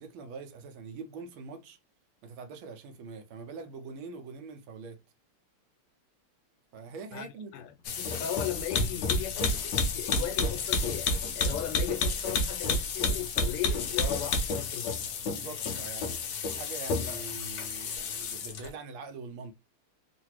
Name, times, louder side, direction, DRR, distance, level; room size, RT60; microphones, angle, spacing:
voice 1, 0.0-1.8 2.2-5.0 6.7-7.5 15.2-19.5, right 4 dB, 75° right, 1.4 m, -44 dB
sound 1, 7.8-18.7, left 3 dB, 70° left, 1.1 m, -30 dB
voice 2, 8.0-15.1, left 11 dB, 85° left, 1.6 m, -37 dB
3.8 x 2.5 x 2.9 m
omnidirectional pair, 2.4 m